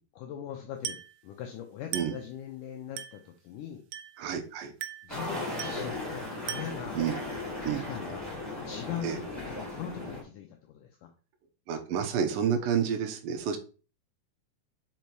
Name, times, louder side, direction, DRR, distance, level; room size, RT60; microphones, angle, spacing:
voice 1, 0.2-3.8 5.0-7.2 7.4-8.4 8.7-11.1, left 9 dB, 80° left, 4 dB, 1.9 m, -41 dB
Glass, 0.8-1.2 1.9-2.3 3.0-3.3 3.9-4.3 4.8-5.2 5.6-5.9 6.5-6.9, right 10 dB, 90° right, 2.6 m, -39 dB
voice 2, 4.2-4.7 7.0-7.2 7.6-7.8 9.0-9.2 11.7-13.6, right 8 dB, 70° right, 4 dB, 2.5 m, -29 dB
sound 1, 5.1-10.2, left 2 dB, ahead, 2.7 m, -37 dB
5.5 x 5.3 x 4.6 m, 0.36 s
omnidirectional pair, 4.5 m